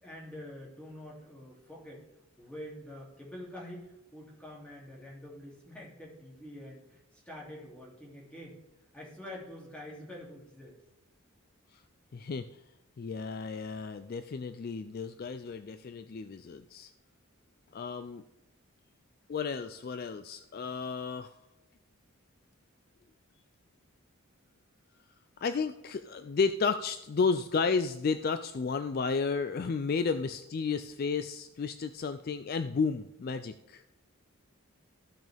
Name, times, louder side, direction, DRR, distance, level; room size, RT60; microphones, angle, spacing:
voice 1, 0.0-2.1 2.4-8.6 8.9-10.7, left 1 dB, 5° left, -5 dB, 2.7 m, -46 dB
voice 2, 12.1-12.4 13.0-16.9 17.7-18.2 19.3-21.3 25.4-33.8, left 5 dB, 45° left, 10 dB, 0.3 m, -32 dB
14.5 x 6.2 x 3.4 m, 0.92 s
head